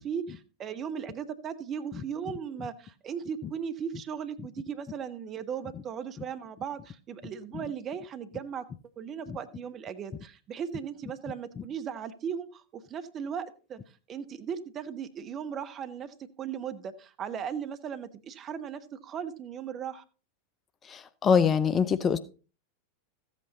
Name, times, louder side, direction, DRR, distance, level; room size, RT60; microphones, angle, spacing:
voice 1, 0.0-8.7 9.0-13.8 14.1-20.0, right 7 dB, 30° right, 1.0 m, -37 dB
voice 2, 20.8-22.2, left 6 dB, 25° left, 0.6 m, -24 dB
14.0 x 8.3 x 4.0 m
figure-of-eight pair, 90°, 0 cm